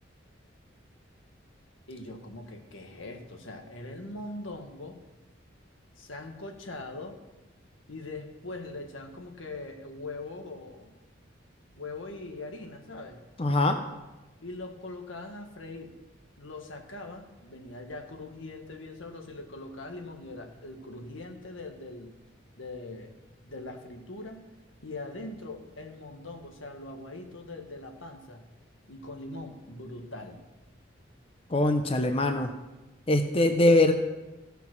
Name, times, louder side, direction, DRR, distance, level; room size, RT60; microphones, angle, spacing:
voice 1, 1.9-5.0 6.0-7.2 7.9-10.9 11.8-13.2 14.4-15.9 16.4-22.1 22.6-23.2 23.4-24.5 24.8-28.4 28.9-30.4, left 2 dB, 85° left, 3 dB, 1.6 m, -41 dB
voice 2, 13.4-13.8 31.5-32.5 33.1-33.9, left 2 dB, 30° left, 6 dB, 0.7 m, -22 dB
15.5 x 5.7 x 6.1 m, 1.1 s
head